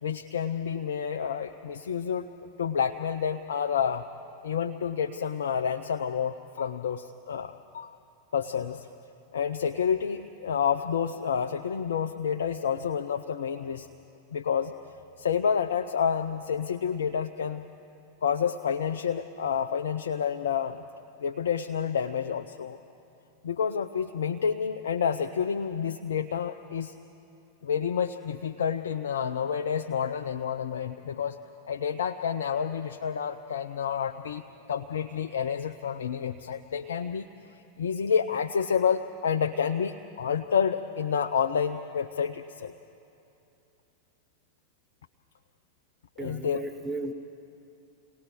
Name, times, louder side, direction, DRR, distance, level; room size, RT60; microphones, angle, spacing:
voice 1, 0.0-4.0 4.4-7.9 8.3-8.9 9.3-13.9 14.3-14.7 15.2-17.6 18.2-20.8 21.2-22.8 23.4-26.9 27.6-31.4 31.7-34.4 34.7-42.7 46.2-46.6, left 7 dB, 65° left, 6 dB, 0.5 m, -29 dB
voice 2, 46.2-47.1, right 3 dB, 20° right, 6 dB, 0.9 m, -35 dB
28.0 x 19.0 x 5.0 m, 2.8 s
figure-of-eight pair, 90°, 0 cm